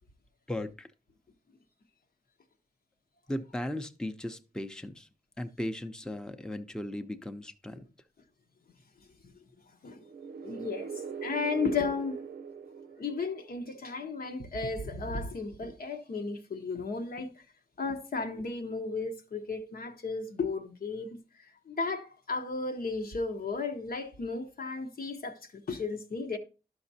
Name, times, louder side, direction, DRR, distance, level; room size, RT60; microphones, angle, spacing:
voice 1, 0.5-0.9 3.3-5.1 5.4-7.9, left 1 dB, 5° left, 0.7 m, -37 dB
sound 1, 10.0-13.8, right 6 dB, 80° right, 0.5 m, -41 dB
voice 2, 10.4-10.9 11.2-12.2 13.0-17.4 17.8-26.4, left 4 dB, 70° left, 1.0 m, -34 dB
11.0 x 5.9 x 2.8 m
cardioid pair, 55°, 16 cm